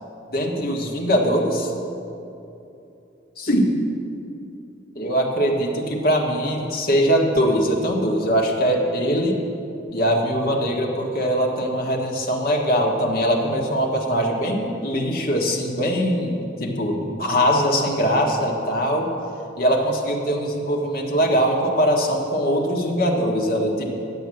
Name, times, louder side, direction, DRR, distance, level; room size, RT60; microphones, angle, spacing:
voice 1, 0.3-1.7 3.4-3.8 4.9-9.4 9.9-19.1 19.6-23.9, equal, 55° left, 0 dB, 1.6 m, -21 dB
11.0 x 7.9 x 7.7 m, 2.8 s
head